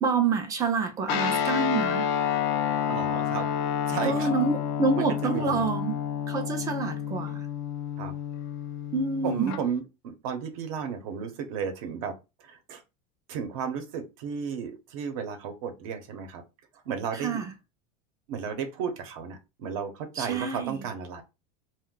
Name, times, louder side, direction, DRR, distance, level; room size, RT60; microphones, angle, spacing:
voice 1, 0.0-2.1 4.0-6.0 6.3-7.5 8.9-9.6 17.1-17.5 20.2-20.8, right 4 dB, 20° right, 0.3 m, -27 dB
Guitar, 1.1-9.6, left 8 dB, 55° left, 0.4 m, -29 dB
voice 2, 2.9-3.5 3.9-4.3 4.9-5.6 8.0-8.1 9.2-12.1 12.4-12.8 13.3-16.4 16.9-17.4 18.3-21.2, right 7 dB, 70° right, 0.7 m, -33 dB
2.3 x 2.1 x 3.6 m
supercardioid pair, 165°, 19 cm